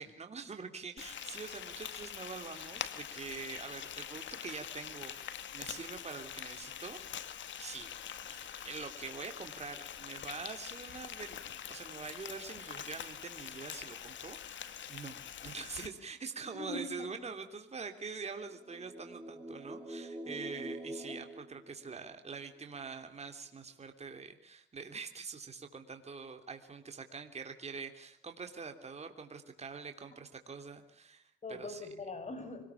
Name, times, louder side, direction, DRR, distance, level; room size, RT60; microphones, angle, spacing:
voice 1, 0.0-5.1 5.5-31.8, right 5 dB, 35° right, 6 dB, 3.2 m, -45 dB
Frying (food), 1.0-15.9, left 9 dB, 70° left, 2.0 m, -44 dB
voice 2, 16.6-17.1 21.0-21.1 31.4-32.7, left 2 dB, 35° left, 7 dB, 6.9 m, -42 dB
sound 1, 18.5-22.3, right 1 dB, 5° right, 5.2 m, -45 dB
26.0 x 20.0 x 7.2 m, 0.67 s
cardioid pair, 90°, 20 cm